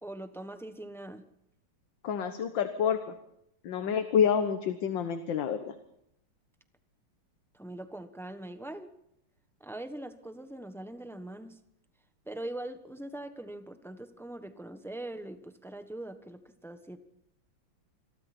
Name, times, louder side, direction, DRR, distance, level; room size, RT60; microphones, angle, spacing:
voice 1, 0.0-1.2 7.5-8.9 9.6-11.6 12.3-17.0, right 1 dB, ahead, 9 dB, 0.6 m, -42 dB
voice 2, 2.0-3.1 3.6-5.7, left 7 dB, 60° left, 9 dB, 1.8 m, -28 dB
27.5 x 22.5 x 4.4 m, 0.76 s
omnidirectional pair, 2.4 m